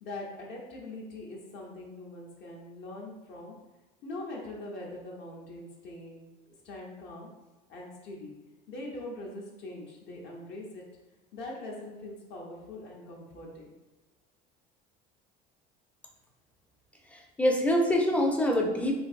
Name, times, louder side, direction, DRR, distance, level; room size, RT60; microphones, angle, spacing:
voice 1, 0.0-3.5 4.0-6.3 6.6-7.3 7.7-8.3 8.7-10.8 11.3-13.7, left 2 dB, 60° left, -2 dB, 0.8 m, -42 dB
voice 2, 17.1-19.0, left 1 dB, 5° left, 1 dB, 0.4 m, -25 dB
3.2 x 2.6 x 2.4 m, 1.1 s
supercardioid pair, 110°, 20 cm